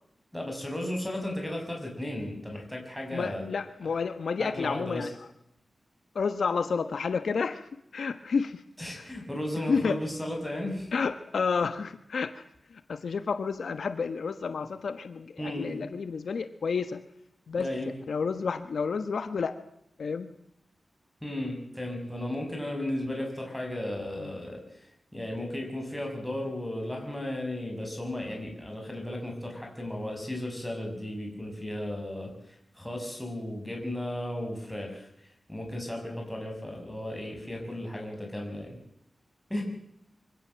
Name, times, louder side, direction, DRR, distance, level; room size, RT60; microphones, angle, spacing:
voice 1, 0.3-3.5 4.4-5.1 8.8-10.9 15.4-15.7 17.6-17.9 21.2-35.1 35.5-38.8 39.5-39.6, left 1 dB, 5° left, 1 dB, 5.9 m, -35 dB
voice 2, 3.1-5.2 6.1-8.6 8.9-9.1 9.7-10.0 10.9-12.4 12.7-17.0 17.5-17.7 18.1-19.6 20.0-20.3 24.2-24.3, left 5 dB, 75° left, 10 dB, 1.2 m, -30 dB
24.5 x 16.5 x 7.5 m, 0.79 s
wide cardioid pair, 155°, 0 cm